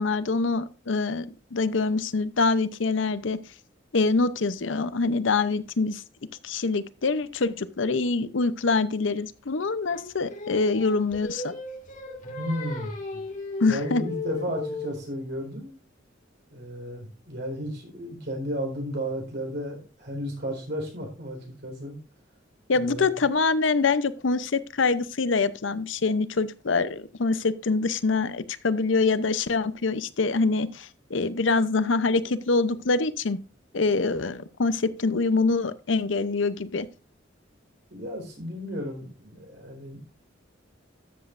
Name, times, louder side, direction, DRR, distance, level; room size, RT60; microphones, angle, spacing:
voice 1, 0.0-3.4 3.9-6.0 6.4-11.6 13.6-14.0 22.7-33.4 33.7-36.9, left 3 dB, 80° left, 0.7 m, -25 dB
Singing, 9.9-15.1, left 3 dB, 45° left, 2.2 m, -36 dB
voice 2, 12.4-13.2 13.7-15.8 16.5-22.0 22.7-23.2 37.9-40.0, equal, 60° right, 4.3 m, -33 dB
13.0 x 8.0 x 2.5 m
head